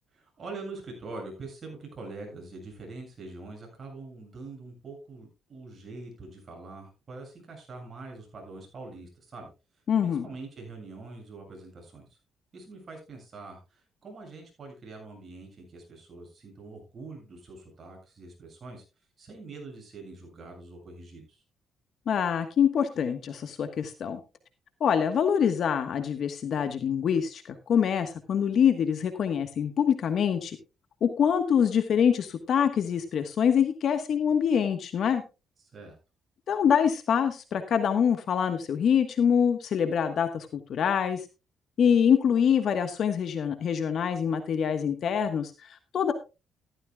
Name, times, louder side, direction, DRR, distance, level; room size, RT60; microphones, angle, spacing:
voice 1, 0.1-9.5 10.0-12.1 12.5-18.8 19.2-21.4 35.6-36.0, right 3 dB, 40° right, 2 dB, 7.4 m, -44 dB
voice 2, 9.9-10.3 22.1-24.2 24.8-30.6 31.0-35.2 36.5-41.2 41.8-45.5 45.9-46.1, left 8 dB, 60° left, 9 dB, 1.3 m, -25 dB
14.5 x 13.5 x 2.3 m, 0.28 s
cardioid pair, 90°, 0 cm